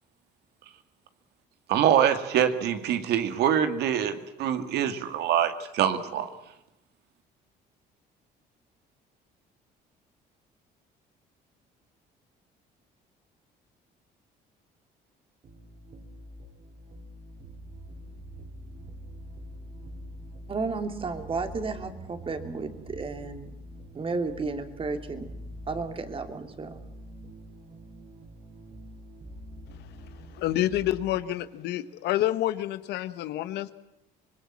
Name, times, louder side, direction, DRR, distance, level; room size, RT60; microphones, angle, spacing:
voice 1, 1.7-6.3, right 9 dB, 75° right, 8 dB, 2.2 m, -24 dB
sound 1, 15.4-31.2, equal, 50° right, 4.9 m, -45 dB
voice 2, 20.5-23.5 23.9-25.3 25.7-26.8, right 4 dB, 30° right, 7 dB, 2.8 m, -33 dB
voice 3, 30.3-33.7, left 13 dB, 80° left, 13 dB, 1.3 m, -28 dB
26.0 x 21.0 x 7.5 m, 0.90 s
cardioid pair, 110°, 17 cm